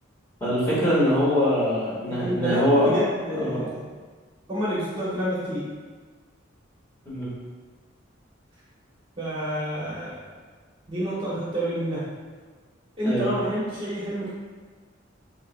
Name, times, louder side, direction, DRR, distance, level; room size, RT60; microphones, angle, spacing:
voice 1, 0.4-3.0 3.3-3.6 7.0-7.3 13.0-13.3, equal, 15° left, -9 dB, 1.2 m, -23 dB
voice 2, 2.2-3.8 4.5-5.6 9.2-10.2 10.9-12.0 13.0-14.3, right 1 dB, 25° right, -9 dB, 0.9 m, -28 dB
4.7 x 3.1 x 2.4 m, 1.4 s
head